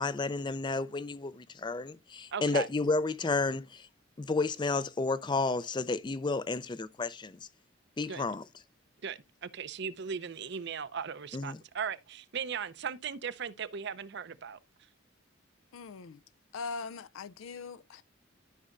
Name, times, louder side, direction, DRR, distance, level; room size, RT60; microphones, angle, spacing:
voice 1, 0.0-3.9 4.2-7.5 8.0-8.4 11.3-11.6, left 3 dB, 20° left, 0.4 m, -31 dB
voice 2, 2.3-2.7 8.1-8.3 9.0-14.6, right 6 dB, 55° right, 0.6 m, -37 dB
voice 3, 15.7-16.2 16.5-18.0, left 4 dB, 85° left, 0.4 m, -41 dB
12.5 x 5.5 x 2.5 m
head